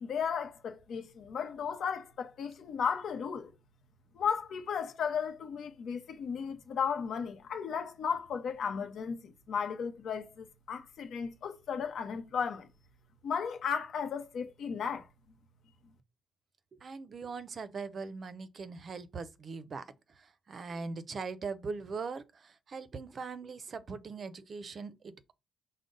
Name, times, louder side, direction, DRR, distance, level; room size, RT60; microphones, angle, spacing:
voice 1, 0.0-3.5 4.1-12.7 13.2-15.1, left 6 dB, 65° left, 0.7 m, -35 dB
voice 2, 16.8-19.8 20.2-25.3, right 4 dB, 45° right, 0.5 m, -41 dB
5.0 x 2.0 x 3.8 m
cardioid pair, 90°, 0 cm